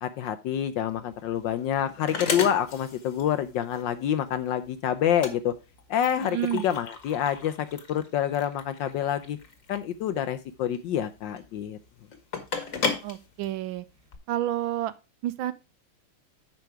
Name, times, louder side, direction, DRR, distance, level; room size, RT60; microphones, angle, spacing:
voice 1, 0.0-5.5 5.9-9.4 9.7-11.8, left 10 dB, 70° left, 1.1 m, -27 dB
sound 1, 0.9-14.2, left 5 dB, 45° left, 1.4 m, -36 dB
voice 2, 6.2-6.6 13.0-13.8 14.3-14.9 15.2-15.5, right 12 dB, 75° right, 1.3 m, -29 dB
9.1 x 5.3 x 4.7 m
omnidirectional pair, 2.4 m